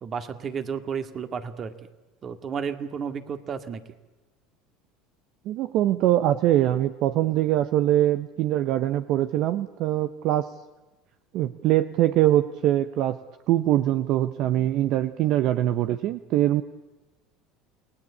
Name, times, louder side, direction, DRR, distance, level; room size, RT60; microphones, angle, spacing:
voice 1, 0.0-1.7 2.2-3.8, right 6 dB, 40° right, 9 dB, 2.0 m, -32 dB
voice 2, 5.4-10.5 11.3-13.2 13.5-16.6, right 13 dB, 60° right, 12 dB, 0.9 m, -23 dB
28.5 x 19.0 x 8.6 m, 1.1 s
supercardioid pair, 100°, 0 cm